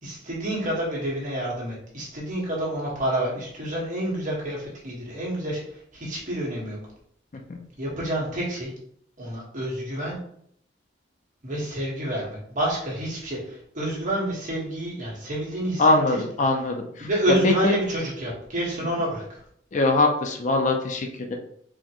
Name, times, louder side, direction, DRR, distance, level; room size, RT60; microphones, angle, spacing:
voice 1, 0.0-6.8 7.8-8.7 9.2-10.2 11.4-15.8 17.0-19.4, right 1 dB, 45° right, -5 dB, 1.5 m, -28 dB
voice 2, 15.8-17.1 17.4-17.7 19.7-21.4, left 2 dB, 40° left, 3 dB, 0.5 m, -22 dB
4.1 x 3.0 x 3.0 m, 0.68 s
head